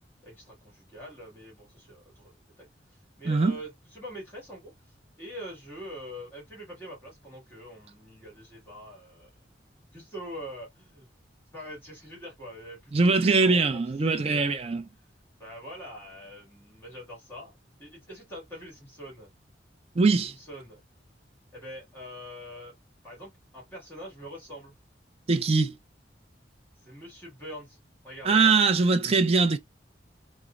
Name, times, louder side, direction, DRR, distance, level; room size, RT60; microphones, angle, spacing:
voice 1, 0.2-2.7 3.2-4.7 5.2-9.3 9.9-11.1 11.5-14.6 15.4-17.5 17.8-19.3 20.2-20.8 21.5-22.7 23.0-24.8 26.8-28.6, equal, 10° left, 1.6 m, -44 dB
voice 2, 3.3-3.6 12.9-14.8 20.0-20.3 25.3-25.8 28.3-29.6, right 4 dB, 35° right, 0.4 m, -22 dB
3.1 x 2.0 x 2.4 m
head